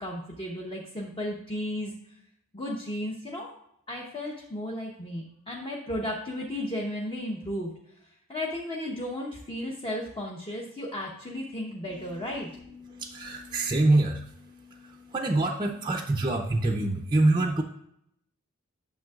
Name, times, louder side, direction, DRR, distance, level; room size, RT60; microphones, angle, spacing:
voice 1, 0.0-2.2 2.5-3.6 3.9-7.7 8.3-12.5, left 1 dB, 25° left, -2 dB, 0.9 m, -34 dB
voice 2, 11.9-17.6, right 2 dB, 20° right, 1 dB, 0.5 m, -27 dB
9.2 x 6.8 x 2.4 m, 0.74 s
head